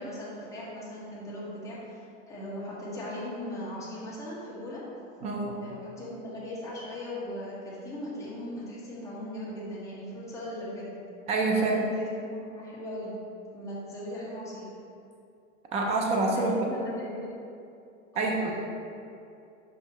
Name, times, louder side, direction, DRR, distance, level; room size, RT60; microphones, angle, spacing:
voice 1, 0.0-4.8 5.6-10.9 11.6-13.2 13.5-14.7 16.3-17.4 18.1-18.6, left 1 dB, 10° left, -8 dB, 1.2 m, -38 dB
voice 2, 5.2-5.7 11.3-11.8 15.7-16.5 18.1-18.5, right 3 dB, 15° right, 0 dB, 0.4 m, -27 dB
5.6 x 5.5 x 3.0 m, 2.6 s
supercardioid pair, 140°, 41 cm